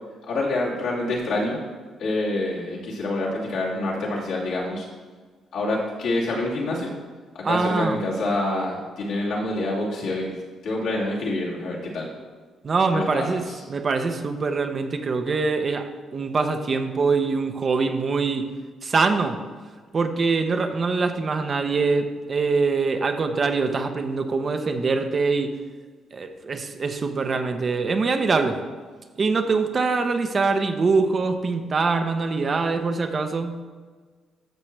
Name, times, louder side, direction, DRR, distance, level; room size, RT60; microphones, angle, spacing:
voice 1, 0.3-1.6 2.0-4.9 5.5-6.9 7.3-10.4 10.6-12.1 12.9-13.6, left 2 dB, 80° left, -6 dB, 2.8 m, -27 dB
voice 2, 7.4-8.0 12.6-13.4 13.7-15.9 16.1-18.5 18.8-19.4 19.9-25.5 26.1-28.6 29.2-33.6, right 4 dB, 40° right, 6 dB, 0.8 m, -23 dB
13.0 x 6.1 x 3.3 m, 1.5 s
cardioid pair, 90°, 0 cm